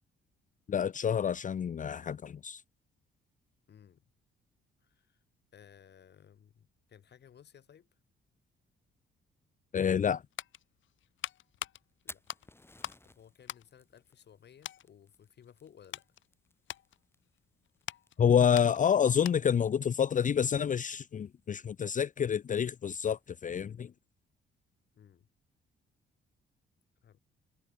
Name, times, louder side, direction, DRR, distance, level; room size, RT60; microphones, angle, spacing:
voice 1, 0.7-2.6 9.7-10.2 18.2-23.9, left 8 dB, 40° left, 0.7 m, -28 dB
voice 2, 3.7-4.0 4.8-5.2 5.5-7.9 12.0-12.2 13.0-16.0 24.9-25.3 27.0-27.2, left 8 dB, 60° left, 7.3 m, -58 dB
sound 1, 10.2-13.1 13.4-14.3 14.6-14.9 15.4-19.7 20.0-20.1, left 12 dB, 75° left, 2.9 m, -44 dB
Fire, 11.8-23.3, left 2 dB, 10° left, 7.1 m, -59 dB
cardioid pair, 90°, 20 cm